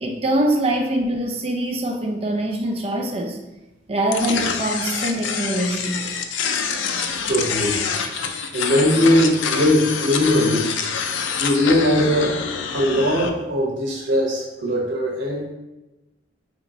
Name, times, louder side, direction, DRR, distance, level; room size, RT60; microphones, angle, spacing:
voice 1, 0.0-3.4 3.9-6.1, right 1 dB, 30° right, 1 dB, 0.5 m, -23 dB
sound 1, 4.1-13.3, left 6 dB, 80° left, 0.4 m, -26 dB
voice 2, 7.3-7.8 8.5-10.7 11.4-12.4 12.7-15.5, left 1 dB, 80° right, -1 dB, 0.7 m, -20 dB
4.3 x 2.9 x 2.7 m, 1.0 s
head